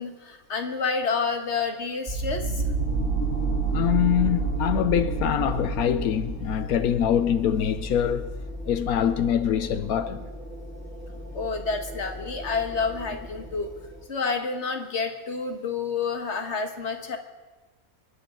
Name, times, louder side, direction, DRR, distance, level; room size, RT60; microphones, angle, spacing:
voice 1, 0.0-2.6 11.3-13.7 14.1-17.2, left 5 dB, 50° left, 1.7 m, -29 dB
sound 1, 2.1-14.0, right 3 dB, 30° right, 2.6 m, -31 dB
voice 2, 3.7-8.3 8.6-10.2, left 9 dB, 80° left, 1.1 m, -24 dB
28.5 x 10.5 x 3.8 m
omnidirectional pair, 1.5 m